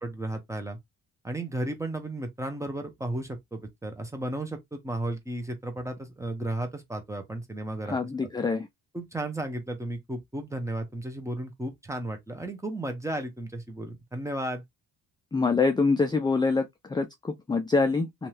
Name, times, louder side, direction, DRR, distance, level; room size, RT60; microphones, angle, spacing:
voice 1, 0.0-0.8 1.2-8.0 8.9-14.6, right 1 dB, 10° right, 0.7 m, -34 dB
voice 2, 7.9-8.7 15.3-18.3, left 4 dB, 10° left, 0.3 m, -25 dB
2.7 x 2.3 x 3.2 m
cardioid pair, 95°, 39 cm